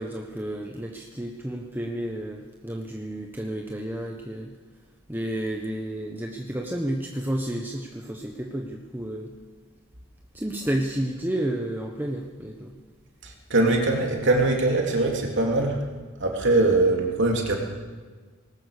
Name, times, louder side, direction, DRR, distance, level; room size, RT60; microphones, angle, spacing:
voice 1, 0.0-4.5 5.1-9.3 10.3-12.7, right 1 dB, 10° right, 1 dB, 1.2 m, -31 dB
voice 2, 13.2-15.8 16.2-17.5, right 2 dB, 60° right, 1 dB, 3.2 m, -22 dB
19.5 x 19.5 x 6.8 m, 1.4 s
head